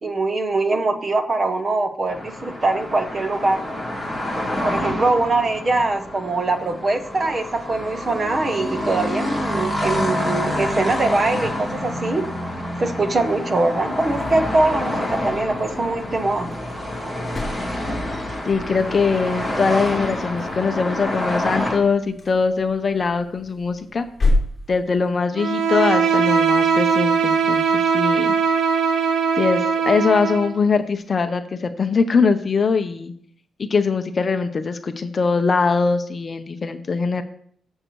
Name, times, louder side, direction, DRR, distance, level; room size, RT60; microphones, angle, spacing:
voice 1, 0.0-3.6 4.6-12.3 12.8-16.5, right 2 dB, 25° right, 8 dB, 0.8 m, -22 dB
sound 1, 2.1-21.8, left 1 dB, 5° right, 1.7 m, -27 dB
sound 2, 14.1-25.2, left 2 dB, 15° left, 3.1 m, -31 dB
voice 2, 18.4-24.1 24.7-28.3 29.4-33.1 33.6-37.2, left 4 dB, 30° left, 8 dB, 0.7 m, -21 dB
Bowed string instrument, 25.4-30.5, right 6 dB, 85° right, 1.2 m, -20 dB
14.5 x 6.4 x 3.1 m, 0.62 s
wide cardioid pair, 165°, 0 cm